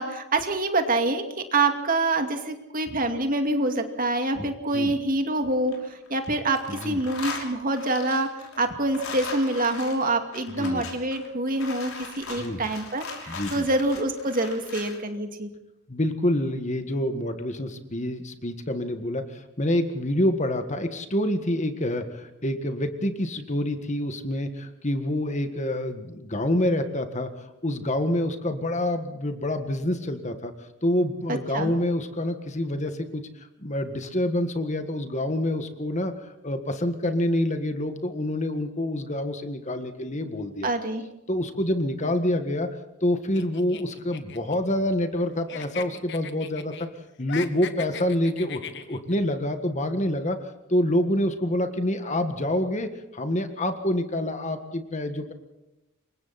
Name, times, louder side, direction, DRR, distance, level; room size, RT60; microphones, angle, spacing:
voice 1, 0.0-15.5 31.3-31.7 40.6-41.0, right 2 dB, 40° right, 5 dB, 2.5 m, -26 dB
sound 1, 5.5-6.3 6.5-15.0, left 4 dB, 75° left, 6.1 m, -39 dB
voice 2, 13.3-13.7 15.9-30.5 30.8-36.1 36.4-40.7 41.3-42.7 43.0-46.7 47.2-55.3, left 1 dB, 35° left, 8 dB, 1.7 m, -27 dB
sound 2, 43.3-45.2 45.5-46.9 47.2-49.2, left 7 dB, 55° left, 1.5 m, -39 dB
28.0 x 23.5 x 4.3 m, 0.94 s
head